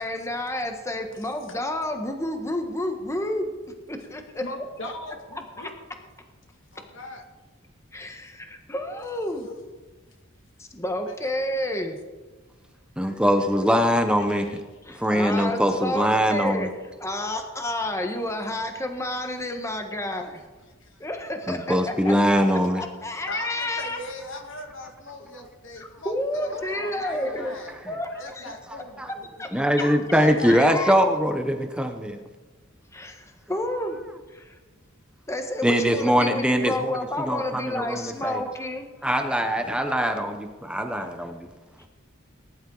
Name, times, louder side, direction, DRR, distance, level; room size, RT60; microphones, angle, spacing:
voice 1, 0.0-3.5 3.9-4.4 4.8-4.9 5.6-5.7 7.9-9.5 10.6-12.0 14.8-16.7 17.0-20.4 21.0-21.8 22.0-22.1 22.5-24.0 25.8-27.5 27.8-28.4 29.4-29.5 30.4-30.9 32.9-34.0 34.3-34.6 35.3-38.9, left 1 dB, 15° left, 4 dB, 1.3 m, -30 dB
voice 2, 4.4-5.8 6.7-7.2 9.5-9.6 11.1-11.4 14.2-14.6 20.0-20.2 20.8-21.1 23.3-27.8 28.2-29.1 29.8-30.6, left 2 dB, 70° left, 3 dB, 2.3 m, -39 dB
voice 3, 13.0-14.5 15.0-16.7 21.5-22.8 27.0-27.1 29.0-29.1 29.5-32.2 35.6-38.4 39.0-41.5, equal, 5° right, 5 dB, 0.9 m, -22 dB
19.5 x 11.5 x 4.0 m, 1.3 s
head